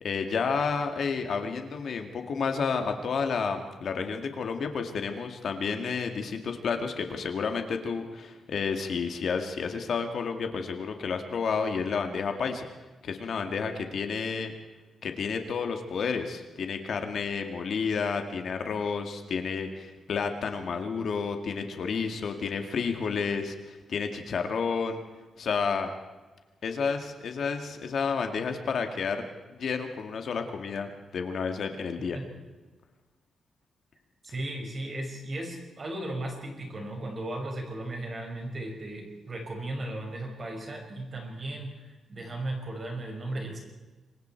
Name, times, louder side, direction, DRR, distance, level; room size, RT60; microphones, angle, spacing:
voice 1, 0.0-12.7 13.0-14.5 15.0-25.0 25.4-25.9 26.6-29.2 29.5-32.2, left 5 dB, 55° left, 5 dB, 2.1 m, -31 dB
voice 2, 34.2-43.6, right 1 dB, 30° right, 1 dB, 5.9 m, -36 dB
27.5 x 24.5 x 4.6 m, 1.2 s
wide cardioid pair, 170°, 0 cm